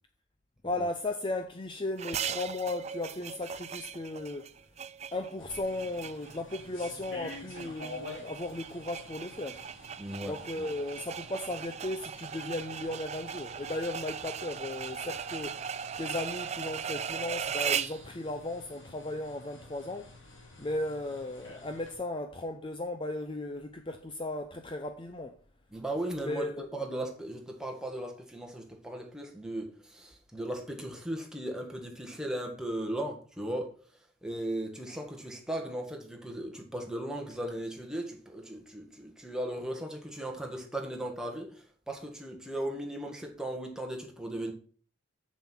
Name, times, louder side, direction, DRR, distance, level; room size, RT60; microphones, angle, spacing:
voice 1, 0.6-4.5 5.1-9.6 10.2-20.1 20.6-25.4 26.2-26.8, left 2 dB, 25° left, 0.6 m, -36 dB
sound 1, 2.0-18.0, right 7 dB, 35° right, 0.4 m, -38 dB
sound 2, 5.4-21.9, left 2 dB, 80° left, 3.5 m, -50 dB
voice 2, 10.0-10.7 25.7-33.7 34.2-44.5, right 1 dB, 5° right, 1.7 m, -37 dB
7.4 x 7.0 x 6.1 m
head